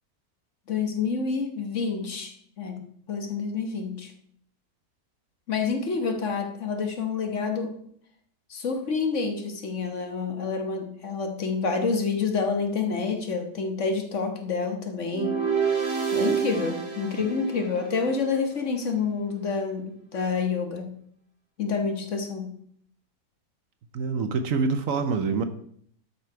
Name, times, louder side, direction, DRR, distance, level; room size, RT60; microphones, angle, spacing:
voice 1, 0.7-4.1 5.5-7.7 8.5-15.4 16.1-21.0 21.6-22.6, left 5 dB, 55° left, 5 dB, 1.4 m, -28 dB
sound 1, 15.1-18.3, right 7 dB, 20° right, 1.7 m, -28 dB
voice 2, 23.9-25.4, right 4 dB, 65° right, 9 dB, 1.1 m, -25 dB
12.0 x 5.7 x 4.6 m, 0.64 s
omnidirectional pair, 1.6 m